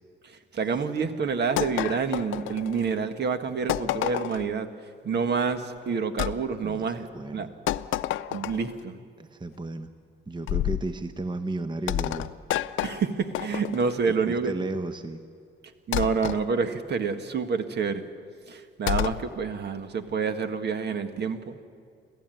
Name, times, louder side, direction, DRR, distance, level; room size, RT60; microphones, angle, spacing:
voice 1, 0.2-4.7 5.0-7.1 7.3-7.5 8.3-9.0 12.8-14.5 15.9-18.0 18.5-21.6, right 5 dB, 55° right, 9 dB, 1.7 m, -28 dB
sound 1, 1.6-3.0 3.7-4.5 6.2-6.4 7.7-8.8 10.5-10.9 11.9-14.0 15.9-16.4 18.9-19.3, left 13 dB, 80° left, 0.6 m, -29 dB
voice 2, 6.6-7.5 9.2-9.9 10.3-12.3 14.1-15.2, right 2 dB, 25° right, 9 dB, 1.1 m, -34 dB
29.5 x 13.0 x 9.2 m, 2.4 s
cardioid pair, 90°, 20 cm